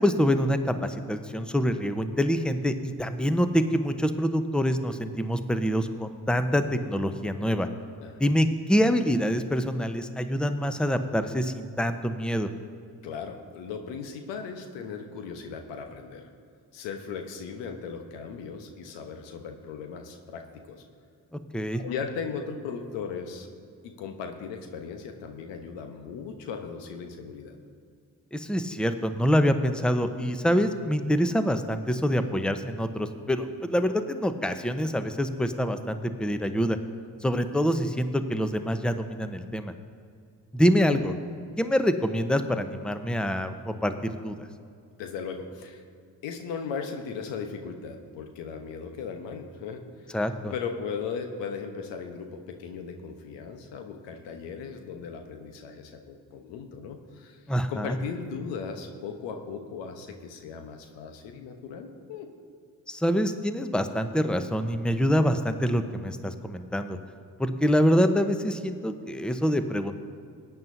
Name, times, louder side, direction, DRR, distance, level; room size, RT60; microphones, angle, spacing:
voice 1, 0.0-7.7 8.2-12.5 21.5-21.8 28.3-36.8 37.2-39.7 40.5-41.1 41.6-44.4 50.1-50.5 57.5-58.0 62.9-67.0 67.4-69.9, equal, ahead, 9 dB, 0.9 m, -26 dB
voice 2, 13.0-16.3 16.7-20.8 21.7-23.5 23.8-27.6 45.0-45.8 46.2-50.2 50.5-57.4 57.7-62.3, left 6 dB, 80° left, 6 dB, 1.1 m, -37 dB
20.0 x 9.3 x 2.7 m, 2.3 s
hypercardioid pair, 40°, 44 cm